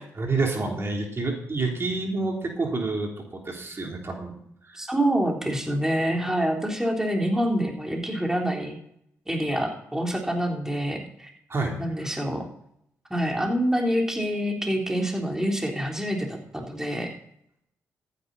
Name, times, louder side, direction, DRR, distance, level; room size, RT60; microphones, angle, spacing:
voice 1, 0.2-4.3 4.6-4.8 11.5-11.8, right 3 dB, 40° right, 1 dB, 3.4 m, -28 dB
voice 2, 4.7-8.8 9.3-11.3 11.8-12.4 13.1-17.1, equal, 10° right, 0 dB, 3.5 m, -26 dB
14.0 x 10.5 x 4.1 m, 0.71 s
supercardioid pair, 55°, 6 cm